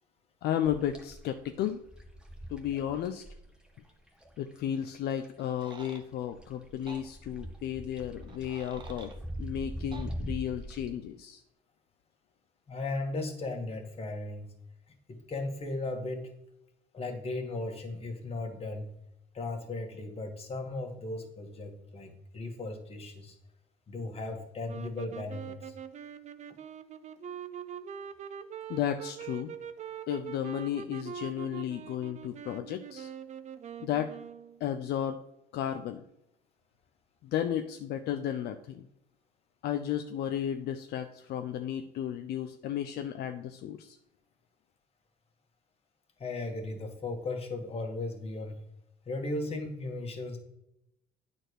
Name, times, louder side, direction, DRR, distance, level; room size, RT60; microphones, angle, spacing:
voice 1, 0.4-1.8 2.5-3.2 4.4-9.1 9.4-11.4 28.7-29.5 30.1-33.1 33.8-34.1 34.6-35.2 35.5-36.0 37.2-38.8 39.6-44.0, left 10 dB, 70° left, 7 dB, 0.6 m, -33 dB
sound 1, 0.6-5.5 5.7-10.9, equal, 5° right, 1.5 m, -42 dB
sound 2, 5.4-6.0 6.9-7.0 8.2-9.2 9.9-10.1, right 4 dB, 25° right, 1.1 m, -49 dB
voice 2, 12.7-14.5 15.1-16.3 16.9-18.9 19.3-23.4 23.9-25.8 46.2-48.6 49.1-50.4, left 2 dB, 35° left, 3 dB, 2.0 m, -36 dB
sound 3, 24.6-34.6, right 8 dB, 45° right, 0.6 m, -43 dB
9.1 x 4.4 x 6.4 m, 0.83 s
cardioid pair, 110°, 17 cm